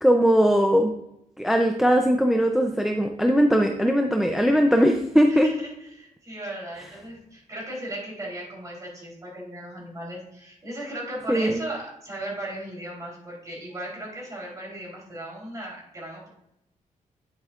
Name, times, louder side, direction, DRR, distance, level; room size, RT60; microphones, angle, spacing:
voice 1, 0.0-0.9 1.4-5.5 11.3-11.6, equal, 5° right, 4 dB, 0.5 m, -20 dB
voice 2, 5.3-16.3, right 1 dB, 25° right, -3 dB, 3.5 m, -37 dB
10.5 x 7.6 x 2.4 m, 0.80 s
wide cardioid pair, 150°, 13 cm